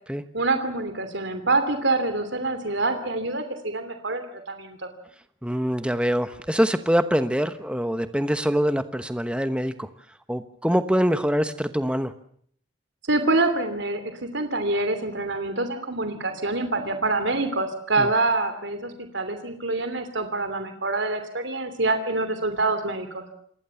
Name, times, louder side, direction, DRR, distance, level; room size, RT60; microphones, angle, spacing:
voice 1, 0.3-4.9 13.1-14.0 14.3-23.2, right 2 dB, 65° right, 8 dB, 2.9 m, -26 dB
voice 2, 5.4-9.9 10.3-12.1 18.0-18.1, equal, 5° right, 10 dB, 1.1 m, -24 dB
28.0 x 20.0 x 7.1 m, 0.64 s
head